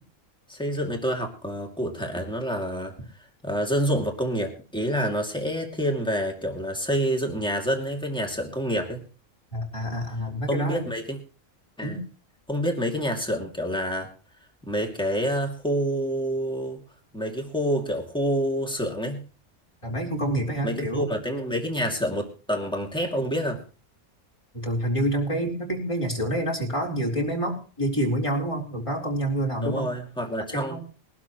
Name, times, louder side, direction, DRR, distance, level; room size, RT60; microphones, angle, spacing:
voice 1, 0.5-2.9 3.4-9.0 10.5-11.2 11.8-12.0 12.5-14.1 14.7-16.8 17.1-19.2 20.6-23.6 29.6-30.8, equal, 5° left, 3 dB, 2.5 m, -27 dB
voice 2, 9.5-10.9 11.8-12.0 19.8-21.1 24.5-29.9 30.5-30.8, right 1 dB, 20° left, 0 dB, 4.1 m, -27 dB
21.5 x 12.0 x 3.1 m, 0.36 s
omnidirectional pair, 1.5 m